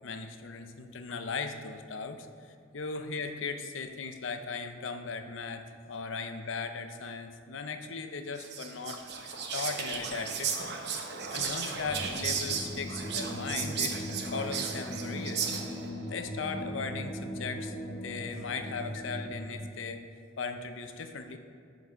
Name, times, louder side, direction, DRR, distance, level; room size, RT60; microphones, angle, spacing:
voice 1, 0.0-2.3 2.7-10.8 11.3-15.5 16.1-17.8 18.0-20.0 20.4-21.4, left 4 dB, 80° left, 7 dB, 0.6 m, -38 dB
Whispering, 8.4-15.9, right 6 dB, 60° right, 0.8 m, -35 dB
sound 1, 11.8-19.5, equal, 15° left, 0.8 m, -39 dB
11.0 x 4.0 x 4.5 m, 2.4 s
head